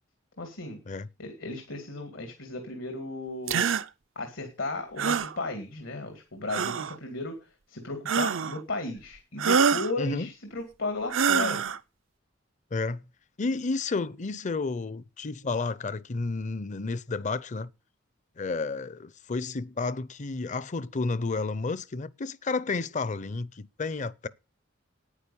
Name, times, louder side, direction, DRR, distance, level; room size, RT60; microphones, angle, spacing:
voice 1, 0.4-0.8 1.2-3.6 4.2-11.6, left 2 dB, 85° left, 2.2 m, -35 dB
sound 1, 3.5-3.8 5.0-5.3 6.5-6.9 8.1-8.6 9.4-9.9 11.1-11.8, right 6 dB, 85° right, 0.6 m, -25 dB
voice 2, 10.0-10.3 12.7-13.0 13.4-17.7 18.4-24.3, left 3 dB, 40° left, 0.5 m, -31 dB
9.9 x 9.3 x 6.9 m
head